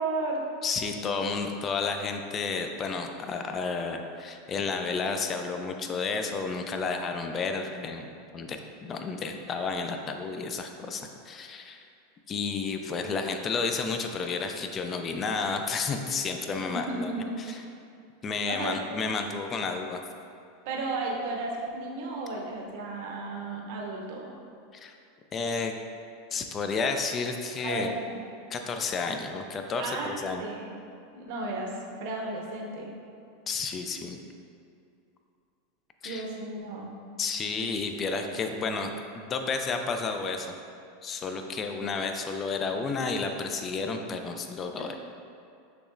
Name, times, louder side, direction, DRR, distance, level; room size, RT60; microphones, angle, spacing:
voice 1, 0.0-0.5 16.7-17.6 18.5-18.8 20.7-24.3 27.6-28.2 29.8-30.8 31.1-33.0 36.0-36.9 38.2-38.3, right 2 dB, 65° right, -1 dB, 0.7 m, -34 dB
voice 2, 0.6-11.8 12.3-17.1 17.4-17.6 18.2-20.0 24.7-24.9 25.3-25.7 26.3-28.0 28.5-30.4 33.5-34.2 36.0-36.2 37.2-40.5 41.0-45.0, left 4 dB, 25° left, 5 dB, 0.4 m, -31 dB
6.6 x 3.1 x 2.5 m, 2.5 s
supercardioid pair, 135°, 0 cm